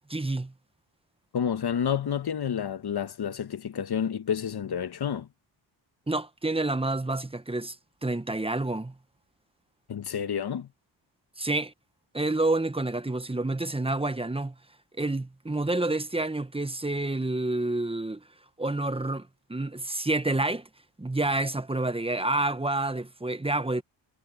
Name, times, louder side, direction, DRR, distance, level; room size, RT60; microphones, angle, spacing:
voice 1, 0.1-0.5 6.1-7.8 8.0-8.9 11.4-11.7 12.1-14.5 15.0-18.2 18.6-20.7 21.0-23.8, right 2 dB, 10° right, 1.2 m, -28 dB
voice 2, 1.3-5.3 9.9-10.7, left 8 dB, 55° left, 1.3 m, -29 dB
cardioid pair, 55°, 47 cm